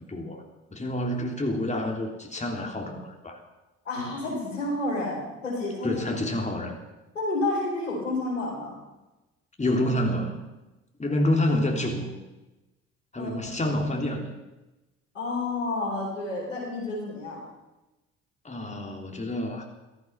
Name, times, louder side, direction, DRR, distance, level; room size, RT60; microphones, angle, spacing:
voice 1, 0.1-0.4 0.7-3.4 5.8-6.8 9.6-10.4 11.0-12.1 13.1-14.4 18.4-19.6, left 1 dB, 20° left, 2 dB, 3.3 m, -28 dB
voice 2, 3.8-5.9 7.1-8.8 13.2-13.3 15.1-17.4, left 2 dB, 90° left, -3 dB, 4.6 m, -30 dB
15.5 x 14.5 x 5.9 m, 1.0 s
figure-of-eight pair, 50°, 36 cm